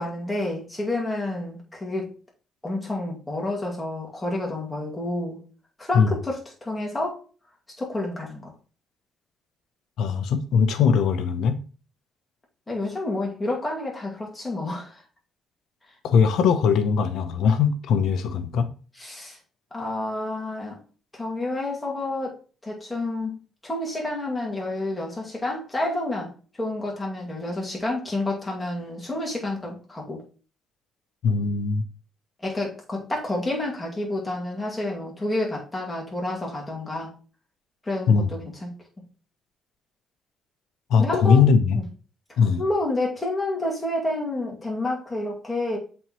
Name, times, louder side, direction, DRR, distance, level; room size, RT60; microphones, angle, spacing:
voice 1, 0.0-2.1 2.6-5.4 5.8-7.2 7.8-8.5 12.7-15.0 19.0-19.4 19.7-20.8 21.1-22.3 22.6-23.3 23.6-30.2 32.4-37.1 37.9-38.7 41.0-41.4 41.7-41.8 42.6-45.8, left 2 dB, 15° left, 2.2 m, -29 dB
voice 2, 10.0-11.6 16.0-18.7 31.2-31.8 38.1-38.3 40.9-41.8 42.4-42.6, left 6 dB, 80° left, 0.7 m, -20 dB
7.4 x 4.3 x 3.0 m
cardioid pair, 90°, 0 cm